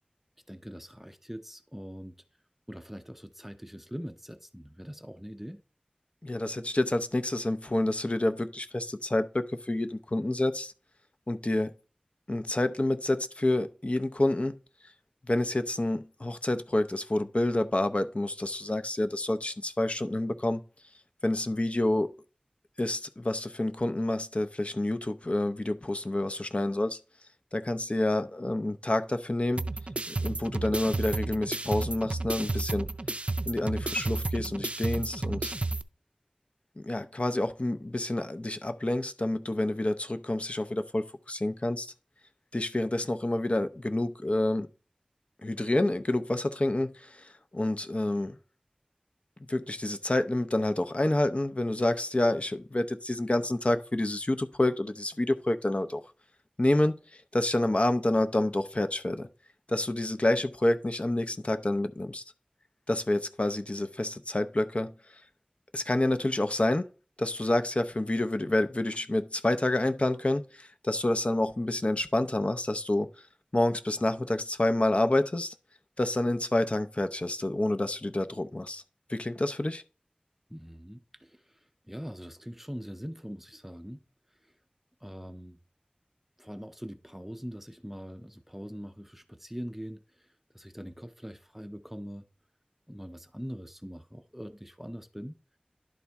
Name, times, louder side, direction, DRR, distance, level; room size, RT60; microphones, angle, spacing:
voice 1, 0.5-2.2 2.7-5.6 80.5-84.0 84.3-84.5 85.0-85.6 86.4-92.2 92.9-95.4, equal, 10° right, 0.6 m, -42 dB
voice 2, 6.2-10.7 11.3-11.7 12.3-14.6 15.3-20.6 21.2-22.2 22.8-27.0 27.5-29.6 30.1-32.9 33.5-35.5 36.8-41.9 42.5-44.7 45.4-48.4 49.5-56.0 56.6-59.3 59.7-62.2 62.9-64.9 65.7-66.9 67.2-73.1 73.5-75.5 76.0-78.8 79.1-79.8, left 1 dB, 45° left, 0.6 m, -28 dB
sound 1, 29.6-35.8, right 2 dB, 50° right, 0.4 m, -32 dB
11.5 x 4.1 x 3.5 m
wide cardioid pair, 50°, 3 cm